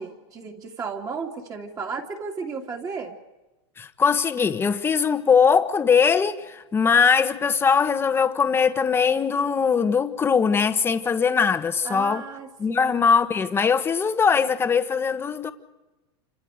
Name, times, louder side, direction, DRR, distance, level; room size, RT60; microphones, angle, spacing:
voice 1, 0.0-3.2 11.8-13.0, right 5 dB, 25° right, 2.8 m, -34 dB
voice 2, 3.8-12.2 12.6-15.5, left 6 dB, 15° left, 1.3 m, -21 dB
28.5 x 26.0 x 5.2 m
supercardioid pair, 145°, 15 cm